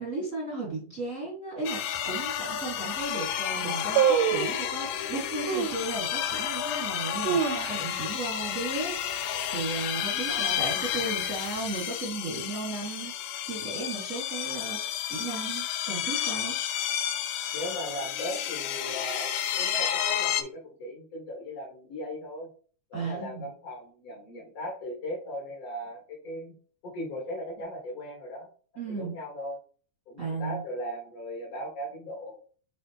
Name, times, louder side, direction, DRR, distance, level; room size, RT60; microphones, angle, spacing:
voice 1, 0.0-9.0 9.5-16.6 22.9-23.5 28.8-29.2 30.2-30.6, right 3 dB, 45° right, -4 dB, 0.9 m, -35 dB
sound 1, 1.6-20.4, left 10 dB, 75° left, 1.7 m, -31 dB
sound 2, 1.9-2.0 2.6-2.7 3.0-3.3 4.0-4.7 5.5-5.9 6.4-6.5 7.0-8.1 8.4-8.5 8.9-9.2 9.6-10.0 10.6-11.4 11.6-11.7, right 9 dB, 80° right, 1.9 m, -27 dB
voice 2, 10.3-10.6 17.5-19.3 19.6-22.5 22.9-26.6 26.8-28.5 28.9-29.6 30.1-32.4, equal, 55° left, -2 dB, 2.3 m, -38 dB
7.5 x 4.4 x 2.8 m, 0.43 s
omnidirectional pair, 3.7 m